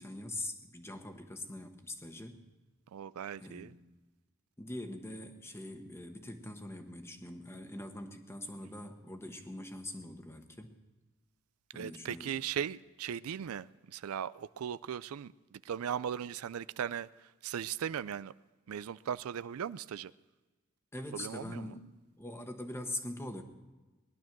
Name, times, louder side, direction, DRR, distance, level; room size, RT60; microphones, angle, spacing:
voice 1, 0.0-2.4 3.4-3.8 4.6-10.8 11.7-12.3 20.9-21.9 22.2-23.4, left 1 dB, 10° left, 1.3 m, -43 dB
voice 2, 2.9-3.7 11.7-17.1 17.4-18.3 18.7-20.1 21.1-21.7, right 8 dB, 85° right, 0.4 m, -38 dB
19.5 x 11.5 x 6.0 m
head